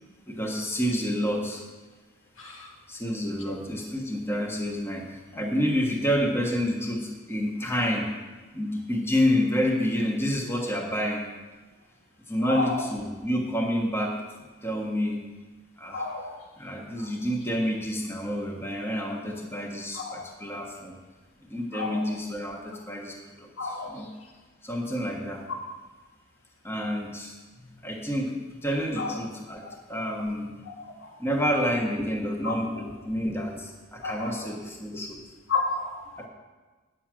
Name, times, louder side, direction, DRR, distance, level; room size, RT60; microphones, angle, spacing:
voice 1, 0.3-1.6 2.9-8.1 8.5-11.2 12.3-14.2 14.6-15.2 15.8-16.0 16.6-21.0 21.5-24.1 24.6-25.5 26.6-30.6 31.2-35.2 36.2-36.3, equal, 10° left, 0 dB, 1.3 m, -29 dB
voice 2, 2.4-2.7 3.5-3.6 12.4-12.9 15.9-16.4 19.9-20.1 21.7-22.0 23.6-23.9 29.0-29.2 31.0-31.1 32.4-32.5 34.0-34.4 35.5-36.3, left 3 dB, 80° left, -1 dB, 2.1 m, -31 dB
9.9 x 6.3 x 7.5 m, 1.3 s
head